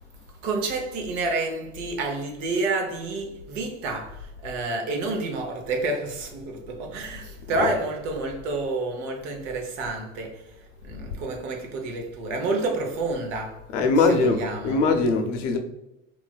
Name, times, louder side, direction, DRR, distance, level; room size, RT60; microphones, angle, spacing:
voice 1, 0.4-10.4 10.8-13.7 14.0-14.9, right 3 dB, 80° right, 0.8 m, -29 dB
voice 2, 13.7-15.6, left 3 dB, 80° left, 0.6 m, -22 dB
3.1 x 2.4 x 2.3 m
supercardioid pair, 90°, 36 cm